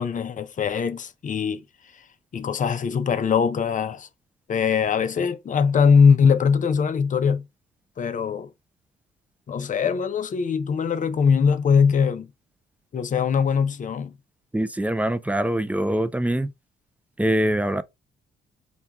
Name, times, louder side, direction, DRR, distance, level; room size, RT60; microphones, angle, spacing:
voice 1, 0.0-1.6 2.3-4.1 4.5-7.4 8.0-8.5 9.5-12.3 12.9-14.1, left 6 dB, 40° left, 0.6 m, -21 dB
voice 2, 14.5-16.5 17.2-17.8, right 1 dB, 5° right, 0.4 m, -23 dB
4.3 x 2.3 x 3.4 m
cardioid pair, 90°, 20 cm